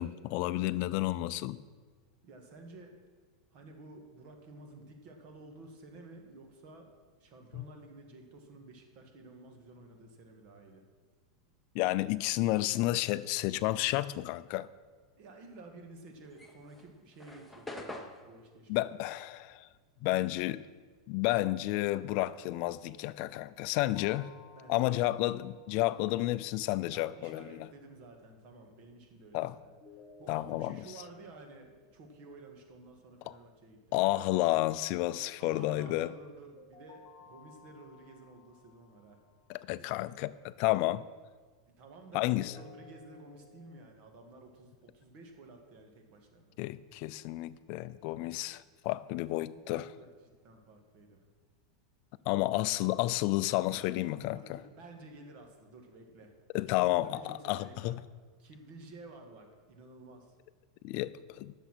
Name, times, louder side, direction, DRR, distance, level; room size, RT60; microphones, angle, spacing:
voice 1, 0.0-1.6 7.5-7.6 11.7-14.7 18.7-19.7 20.0-20.6 21.1-24.3 24.7-27.7 29.3-29.5 30.3-30.8 33.3-33.4 33.9-36.1 39.5-41.1 42.1-42.5 46.6-49.9 52.3-54.6 56.5-58.1 60.8-61.5, left 17 dB, 50° left, 0.4 m, -31 dB
voice 2, 2.2-3.0 3.5-6.9 7.2-10.9 15.2-18.9 24.5-25.1 26.9-29.7 30.2-34.0 35.4-39.2 39.8-39.9 41.7-46.6 49.7-50.1 50.4-51.3 54.3-56.3 56.7-57.9 58.4-60.4, right 2 dB, 45° right, 1.8 m, -52 dB
sound 1, 16.2-21.0 21.2-23.2, left 2 dB, 5° left, 0.9 m, -48 dB
sound 2, 23.9-26.8 29.8-32.8 36.6-39.8 42.3-43.8, left 5 dB, 30° left, 1.5 m, -58 dB
10.5 x 6.9 x 6.1 m
supercardioid pair, 140°, 3 cm